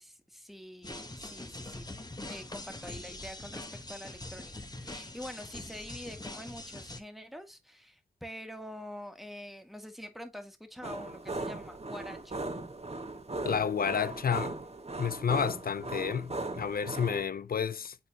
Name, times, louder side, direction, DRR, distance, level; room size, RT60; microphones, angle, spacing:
voice 1, 0.0-1.9 2.2-12.4, equal, ahead, 1.8 m, -46 dB
sound 1, 0.8-7.0, left 2 dB, 25° left, 1.3 m, -43 dB
sound 2, 10.8-17.3, right 2 dB, 40° right, 1.2 m, -38 dB
voice 2, 13.4-14.6 15.0-18.0, left 7 dB, 70° left, 0.5 m, -30 dB
8.9 x 4.0 x 2.9 m
cardioid pair, 40°, 16 cm